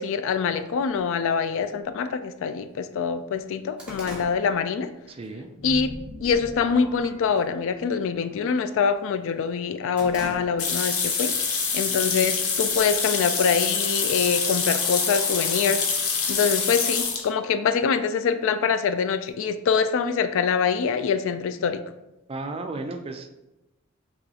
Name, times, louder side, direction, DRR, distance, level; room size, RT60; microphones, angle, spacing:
voice 1, 0.0-4.9 5.6-5.9 6.2-11.3 11.7-15.8 16.3-21.8, left 6 dB, 60° left, 11 dB, 0.3 m, -24 dB
sound 1, 0.9-1.0 1.9-2.0 2.5-2.6 2.9-5.3 5.7-6.0 6.5-7.0 7.2-7.5 7.8-9.1 9.5-11.0 11.3-11.4 12.3-13.2, left 1 dB, 5° right, 0.9 m, -42 dB
voice 2, 5.1-5.5 22.3-23.5, right 2 dB, 25° right, 6 dB, 0.4 m, -34 dB
sound 2, 5.6-8.2, equal, 35° left, 0.7 m, -40 dB
sound 3, 10.6-17.3, left 5 dB, 90° left, 0.7 m, -25 dB
5.4 x 3.1 x 2.8 m, 0.97 s
head